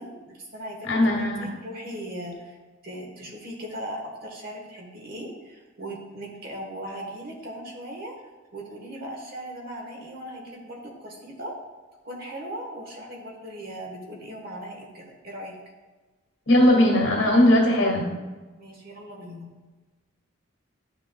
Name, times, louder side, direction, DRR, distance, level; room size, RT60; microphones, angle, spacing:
voice 1, 0.0-2.6 2.8-8.2 8.5-11.5 12.0-15.6 18.6-19.5, right 1 dB, 45° right, 0 dB, 1.4 m, -38 dB
voice 2, 0.9-1.5 16.5-18.1, left 1 dB, 75° left, -1 dB, 2.2 m, -19 dB
10.0 x 6.1 x 2.3 m, 1.2 s
head